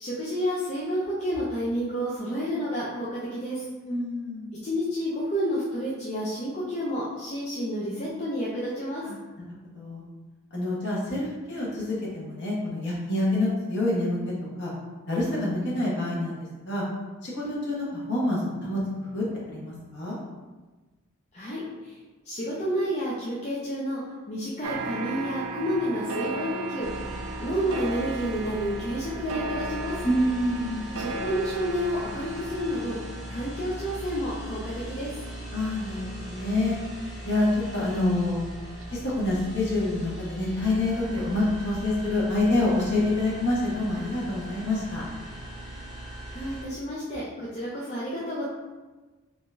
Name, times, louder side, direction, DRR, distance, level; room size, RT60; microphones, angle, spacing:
voice 1, 0.0-3.7 4.6-9.1 21.3-22.0 22.2-24.0 24.3-26.9 27.4-30.0 31.0-33.0 33.3-35.2 46.3-48.4, equal, 35° left, -7 dB, 0.6 m, -30 dB
voice 2, 3.8-4.5 9.1-9.2 9.7-10.0 10.5-14.2 14.6-14.7 15.1-16.8 17.2-18.8 19.1-20.2 30.0-30.9 35.5-36.7 37.2-38.5 38.9-45.0, left 2 dB, 55° left, -6 dB, 1.2 m, -27 dB
sound 1, 24.6-39.7 40.1-41.5 41.8-41.9, right 3 dB, 75° right, 0.4 m, -37 dB
sound 2, 26.8-46.6, right 1 dB, ahead, 0.9 m, -40 dB
3.9 x 2.5 x 3.3 m, 1.2 s
head